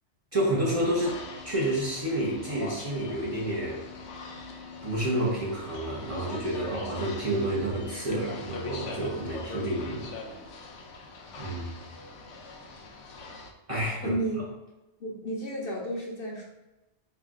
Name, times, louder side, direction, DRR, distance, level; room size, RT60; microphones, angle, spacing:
voice 1, 0.3-1.2 1.4-3.8 4.8-10.1 11.4-11.7 13.7-14.2, right 1 dB, 30° right, -5 dB, 0.9 m, -29 dB
sound 1, 0.6-13.5, left 3 dB, 85° left, 1.0 m, -42 dB
voice 2, 14.0-14.4 15.0-16.4, right 1 dB, 55° left, -1 dB, 1.0 m, -32 dB
4.8 x 2.5 x 3.6 m, 1.0 s
omnidirectional pair, 1.2 m